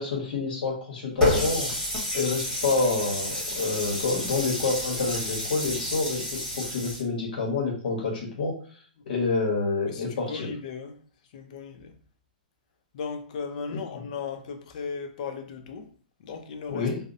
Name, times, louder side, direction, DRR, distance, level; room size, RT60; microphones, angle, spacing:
voice 1, 0.0-1.7 2.1-8.5 9.1-10.5 13.7-13.8 16.7-17.0, left 3 dB, 75° left, 1.1 m, -28 dB
Water tap faucet, 1.2-7.0, left 1 dB, 10° left, 1.2 m, -29 dB
voice 2, 9.9-11.0 11.3-12.0 12.9-15.9 16.2-16.9, left 5 dB, 55° left, 0.5 m, -37 dB
2.7 x 2.0 x 2.5 m
hypercardioid pair, 145°, 5 cm